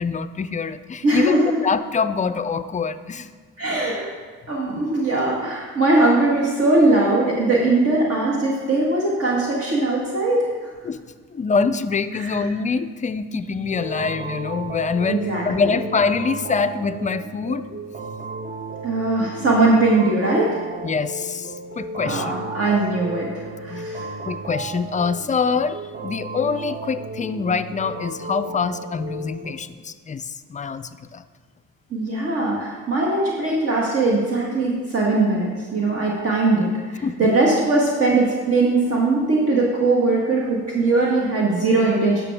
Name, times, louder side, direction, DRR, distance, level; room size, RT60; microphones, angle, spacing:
voice 1, 0.0-3.3 10.8-11.0 11.3-17.6 20.8-22.4 23.7-23.9 24.3-31.2 37.0-37.2, left 5 dB, 25° left, 12 dB, 0.4 m, -25 dB
voice 2, 1.0-1.6 3.6-4.1 4.5-10.5 12.1-12.4 15.1-15.7 18.8-20.6 22.0-24.1 31.9-42.2, right 2 dB, 50° right, -3 dB, 1.6 m, -20 dB
sound 1, 13.7-29.5, right 2 dB, 30° right, 0.9 m, -34 dB
11.0 x 6.0 x 3.5 m, 1.5 s
cardioid pair, 90°, 30 cm